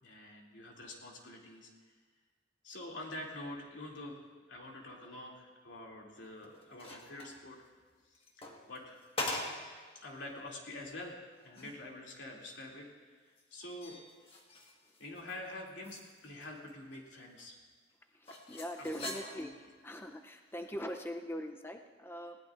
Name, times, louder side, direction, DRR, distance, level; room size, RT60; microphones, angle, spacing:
voice 1, 0.0-1.7 2.6-7.6 8.1-9.0 9.9-12.9 13.2-14.0 15.0-17.6 18.8-19.5, left 1 dB, 90° left, -2 dB, 2.7 m, -47 dB
sound 1, 6.3-7.4 8.1-9.8 10.2-10.3 10.8-10.9 11.3-11.8 13.4-15.4 15.7-17.0 17.4-17.5 18.3-19.6 20.5-20.7, left 2 dB, 30° left, 1.5 m, -43 dB
voice 2, 18.1-19.5 19.8-22.4, equal, 15° left, 4 dB, 0.6 m, -42 dB
20.0 x 18.0 x 2.5 m, 1.5 s
head